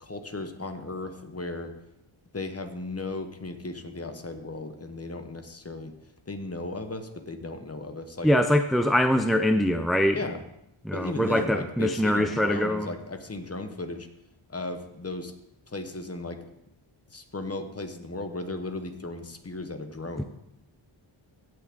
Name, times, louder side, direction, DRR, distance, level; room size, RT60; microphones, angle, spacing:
voice 1, 0.0-1.7 2.3-5.9 6.3-8.3 10.1-10.4 10.9-14.1 14.5-15.3 15.7-16.4 17.1-20.2, left 2 dB, 30° left, 7 dB, 1.0 m, -36 dB
voice 2, 8.2-10.2 10.9-12.9 20.2-20.3, equal, ahead, 7 dB, 0.3 m, -23 dB
16.5 x 6.0 x 3.7 m, 0.82 s
wide cardioid pair, 100°, 49 cm